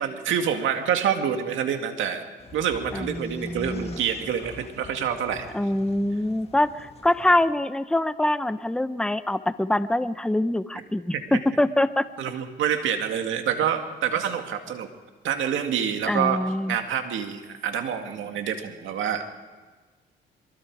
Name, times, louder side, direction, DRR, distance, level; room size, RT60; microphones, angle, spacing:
voice 1, 0.0-2.2 2.5-5.5 11.1-11.2 12.2-14.9 15.2-16.4 16.7-19.3, right 8 dB, 80° right, 5 dB, 2.1 m, -27 dB
sound 1, 2.4-7.5, left 4 dB, 30° left, 1.8 m, -45 dB
voice 2, 2.9-4.0 5.5-12.1 16.1-16.8, left 1 dB, 5° left, 12 dB, 0.8 m, -24 dB
23.5 x 23.0 x 4.9 m, 1.3 s
cardioid pair, 90°, 20 cm